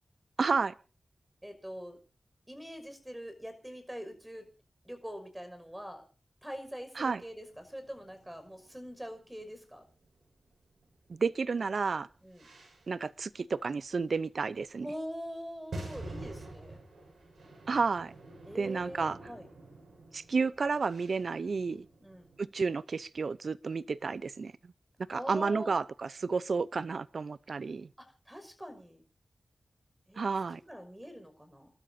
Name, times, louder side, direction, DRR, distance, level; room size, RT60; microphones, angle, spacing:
voice 1, 0.4-0.7 7.0-7.2 11.2-12.1 12.9-14.9 17.7-18.1 18.5-19.2 20.1-21.9 22.4-24.5 25.1-27.9 30.2-30.6, right 4 dB, 75° right, 0.7 m, -31 dB
voice 2, 1.4-2.0 2.5-4.5 4.8-6.0 6.4-9.8 12.2-12.5 14.8-16.8 18.4-19.5 22.0-22.3 25.1-25.7 28.0-29.0 30.1-30.2 30.7-31.7, equal, 10° right, 5.9 m, -43 dB
sound 1, 7.0-11.1 11.4-13.1 13.6-13.7 14.5-14.6 15.6-22.5, right 2 dB, 90° right, 6.5 m, -49 dB
28.5 x 13.0 x 2.8 m
cardioid pair, 45°, 0 cm